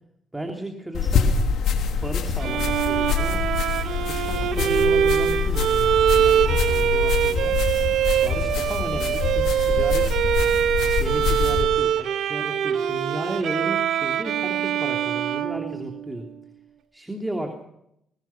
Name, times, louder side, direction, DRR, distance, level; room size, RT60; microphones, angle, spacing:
voice 1, 0.3-1.3 2.0-3.4 4.1-7.6 8.2-10.2 11.0-16.3 16.9-17.5, right 1 dB, 10° right, 3 dB, 3.0 m, -34 dB
sound 1, 0.9-11.6, left 6 dB, 80° left, 3.0 m, -25 dB
Bowed string instrument, 2.4-16.3, right 9 dB, 75° right, 1.5 m, -23 dB
24.5 x 20.0 x 5.9 m, 0.78 s
cardioid pair, 90°, 0 cm